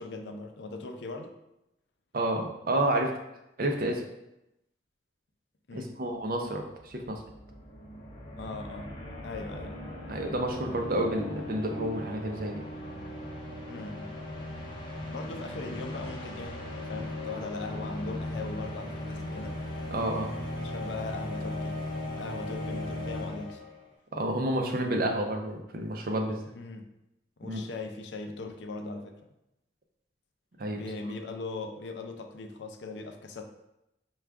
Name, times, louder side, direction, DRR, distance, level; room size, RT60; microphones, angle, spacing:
voice 1, 0.0-1.4 5.7-5.9 8.4-8.9 9.2-9.9 13.7-14.1 15.1-19.6 20.6-21.8 22.2-23.6 26.5-26.9 27.4-29.2 30.7-33.4, left 3 dB, 75° left, 5 dB, 0.5 m, -39 dB
voice 2, 2.1-3.1 3.6-4.0 5.7-7.2 10.1-12.6 19.9-20.3 24.1-26.4 27.4-27.6 30.6-30.8, right 1 dB, 50° right, 3 dB, 0.5 m, -30 dB
sound 1, 6.7-23.9, left 1 dB, 25° left, 0.7 m, -38 dB
4.7 x 2.3 x 3.4 m, 0.87 s
head